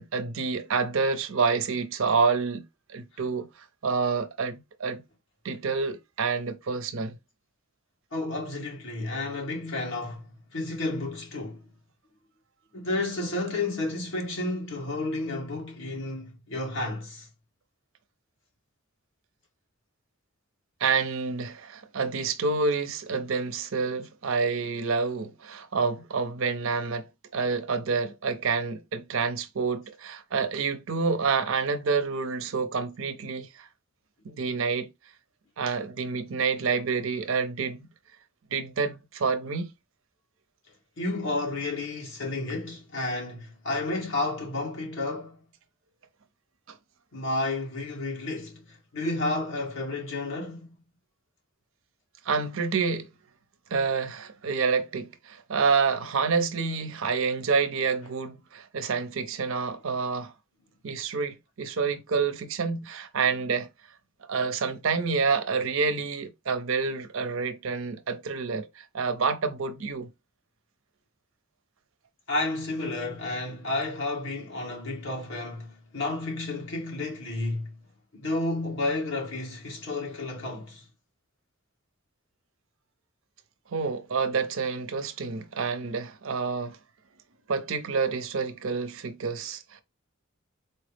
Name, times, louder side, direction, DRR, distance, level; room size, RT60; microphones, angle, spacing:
voice 1, 0.0-3.5 3.8-5.0 5.4-7.2 20.8-27.1 27.3-33.7 34.2-34.9 35.6-37.9 38.5-39.7 46.7-46.8 52.3-53.1 53.7-60.3 60.8-63.7 64.3-70.1 83.7-86.8 87.5-89.8, right 5 dB, 65° right, 0.6 m, -28 dB
voice 2, 8.1-11.6 12.7-17.3 41.0-45.4 47.1-50.7 72.3-77.7 78.1-80.8, left 2 dB, 65° left, 1.6 m, -31 dB
4.3 x 2.0 x 3.2 m
head